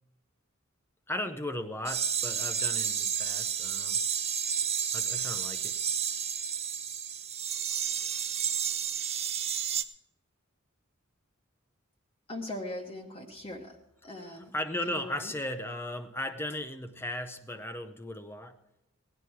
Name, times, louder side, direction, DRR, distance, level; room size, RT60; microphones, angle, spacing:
voice 1, 1.1-4.0 4.9-5.8 14.2-18.6, left 1 dB, 10° left, 9 dB, 0.6 m, -36 dB
sound 1, 1.9-9.8, right 8 dB, 30° right, 0.6 m, -31 dB
voice 2, 12.3-13.8 14.0-14.5 14.9-15.3, left 1 dB, 25° left, 0 dB, 1.0 m, -40 dB
17.5 x 9.9 x 4.6 m, 0.93 s
head